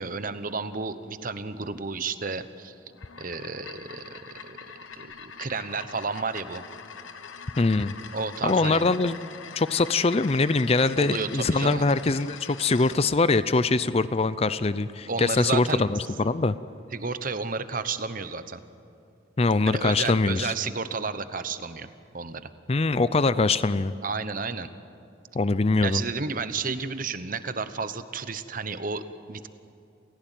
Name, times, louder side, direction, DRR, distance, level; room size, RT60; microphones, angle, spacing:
voice 1, 0.0-2.7 3.2-4.6 5.0-6.6 8.1-8.9 11.0-11.8 15.1-15.9 16.9-18.6 19.7-22.5 24.0-24.7 25.8-29.5, right 4 dB, 45° right, 12 dB, 1.0 m, -32 dB
sound 1, 2.9-13.0, left 6 dB, 85° left, 1.2 m, -43 dB
voice 2, 7.6-7.9 8.4-9.2 9.6-16.6 19.4-20.5 22.7-23.9 25.3-26.0, left 3 dB, 30° left, 15 dB, 0.5 m, -23 dB
28.5 x 16.0 x 9.2 m, 2.5 s
head